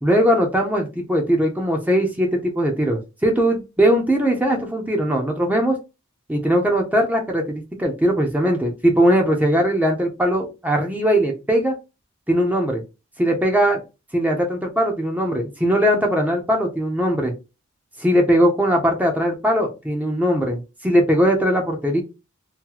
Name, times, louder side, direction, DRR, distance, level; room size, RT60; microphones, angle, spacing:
voice 1, 0.0-5.8 6.3-11.7 12.3-12.8 13.2-13.8 14.1-17.3 18.0-22.0, equal, 10° right, 2 dB, 0.7 m, -20 dB
2.9 x 2.2 x 3.8 m, 0.27 s
head